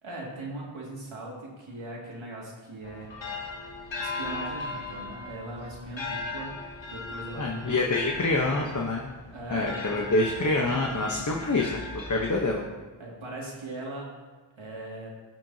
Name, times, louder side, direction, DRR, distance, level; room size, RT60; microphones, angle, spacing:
voice 1, 0.0-3.1 4.0-8.8 9.3-10.1 13.0-14.1 14.6-15.1, right 2 dB, 90° right, -4 dB, 2.2 m, -40 dB
sound 1, 2.8-12.8, left 3 dB, 70° left, 1.3 m, -38 dB
voice 2, 7.4-9.1 9.5-12.7, left 2 dB, 40° left, 0 dB, 1.0 m, -26 dB
15.0 x 6.1 x 2.8 m, 1.3 s
wide cardioid pair, 60°, 46 cm